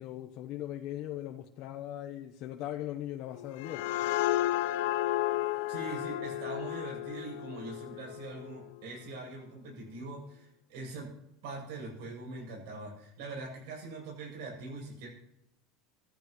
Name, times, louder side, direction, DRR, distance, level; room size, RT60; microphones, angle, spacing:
voice 1, 0.0-3.8, left 12 dB, 50° left, 3 dB, 1.0 m, -39 dB
sound 1, 3.3-8.8, left 14 dB, 80° left, 0.7 m, -33 dB
voice 2, 5.7-11.1 11.4-15.1, right 3 dB, 70° right, -3 dB, 7.8 m, -42 dB
26.0 x 13.0 x 3.2 m, 0.82 s
cardioid pair, 155°, 0 cm